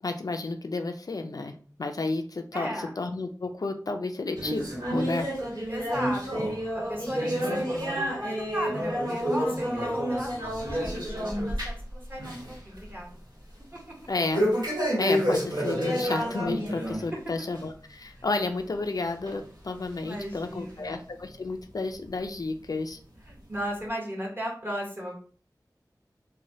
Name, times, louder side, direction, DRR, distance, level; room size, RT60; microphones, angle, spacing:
voice 1, 0.0-5.3 14.1-14.5 15.0-23.0, left 3 dB, 60° left, 6 dB, 0.3 m, -31 dB
voice 2, 2.5-2.9 5.7-6.4 6.7-13.1 20.1-20.9 23.3-25.1, equal, 30° right, -2 dB, 1.1 m, -36 dB
sound 1, 4.3-11.9 12.2-12.5 12.9-13.0 14.3-17.0 17.4-17.6 18.3-18.4 19.3-19.4 20.1-20.2, equal, 80° right, 1.3 m, -29 dB
3.0 x 2.2 x 2.7 m, 0.42 s
wide cardioid pair, 50°, 7 cm